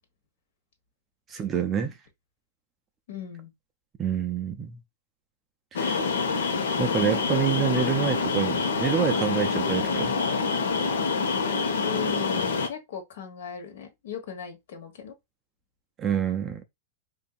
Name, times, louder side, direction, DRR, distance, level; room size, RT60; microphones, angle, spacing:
voice 1, 1.3-2.0 4.0-4.8 5.7-6.0 6.8-10.2 16.0-16.6, right 8 dB, 15° right, 0.3 m, -27 dB
voice 2, 3.1-3.5 11.8-15.1, left 8 dB, 55° left, 1.3 m, -37 dB
sound 1, 5.8-12.7, left 4 dB, 85° left, 1.0 m, -26 dB
5.2 x 2.6 x 2.4 m
supercardioid pair, 180°, 0 cm